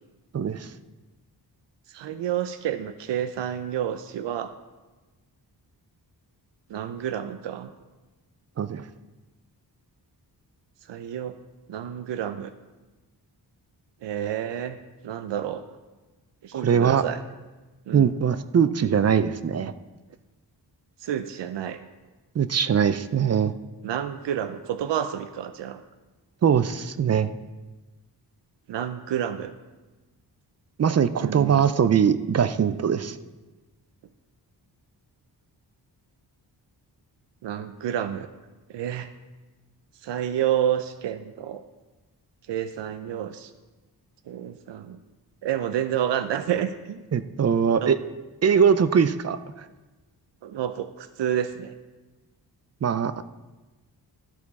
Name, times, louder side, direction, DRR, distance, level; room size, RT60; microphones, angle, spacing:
voice 1, 0.3-0.7 8.6-8.8 16.5-17.0 17.9-19.7 22.4-23.5 26.4-27.3 30.8-33.2 47.1-48.0 48.4-49.4 52.8-53.2, right 7 dB, 40° right, 12 dB, 0.4 m, -21 dB
voice 2, 1.9-4.5 6.7-7.7 10.9-11.4 11.7-12.5 14.0-14.8 15.0-15.7 16.4-17.2 17.9-18.1 21.0-21.8 23.8-25.8 28.7-29.5 31.2-31.7 37.4-38.3 38.7-39.1 40.0-41.6 42.5-43.5 44.3-45.0 45.4-47.0 47.8-48.0 50.4-51.7, right 10 dB, 85° right, 10 dB, 0.6 m, -29 dB
13.0 x 6.7 x 4.1 m, 1.2 s
wide cardioid pair, 130°, 41 cm